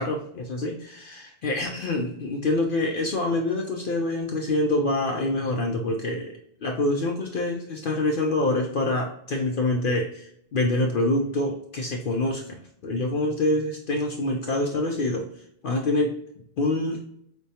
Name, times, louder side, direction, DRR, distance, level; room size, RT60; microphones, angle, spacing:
voice 1, 0.0-15.3 15.6-16.1 16.6-17.0, left 2 dB, 60° left, 2 dB, 0.6 m, -26 dB
5.1 x 2.2 x 2.7 m, 0.70 s
omnidirectional pair, 1.2 m